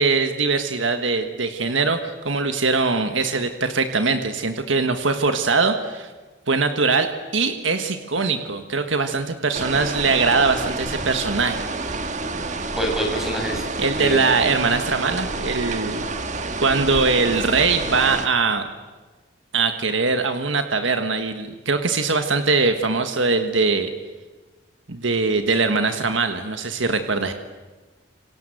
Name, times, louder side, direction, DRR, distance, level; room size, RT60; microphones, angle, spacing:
voice 1, 0.0-6.1 6.5-11.9 13.8-16.0 16.6-18.7 19.5-23.9 24.9-27.3, right 4 dB, 75° right, 7 dB, 1.5 m, -22 dB
sound 1, 9.5-18.3, right 3 dB, 35° right, 1.5 m, -29 dB
voice 2, 12.7-13.6 14.0-14.2, equal, ahead, 1 dB, 6.0 m, -25 dB
27.0 x 26.0 x 7.9 m, 1.3 s
head